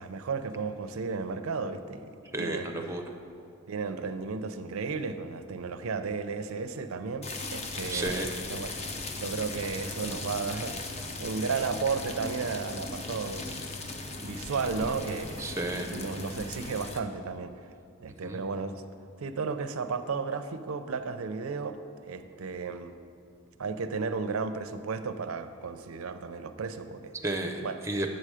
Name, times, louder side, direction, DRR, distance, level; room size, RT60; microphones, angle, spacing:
voice 1, 0.0-2.1 2.4-3.0 3.7-8.9 9.2-13.5 14.2-15.5 15.9-17.5 18.0-18.8 19.2-21.8 22.1-22.9 23.6-27.1 27.6-27.8, right 4 dB, 80° right, 10 dB, 0.5 m, -34 dB
voice 2, 2.3-3.0 7.9-8.4 15.4-15.9 18.2-18.4 27.2-28.2, right 2 dB, 15° right, 4 dB, 0.6 m, -32 dB
sound 1, 7.2-17.0, left 2 dB, 30° left, 0.5 m, -38 dB
8.0 x 6.7 x 4.9 m, 2.5 s
head